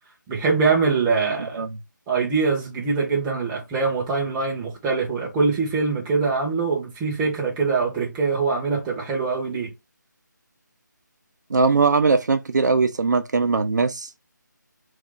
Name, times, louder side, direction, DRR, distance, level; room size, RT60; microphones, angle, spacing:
voice 1, 0.3-1.6 2.1-9.7, right 4 dB, 10° right, 0.6 m, -23 dB
voice 2, 11.5-14.1, right 4 dB, 65° right, 0.4 m, -20 dB
2.4 x 2.2 x 3.8 m
figure-of-eight pair, 155°, 10 cm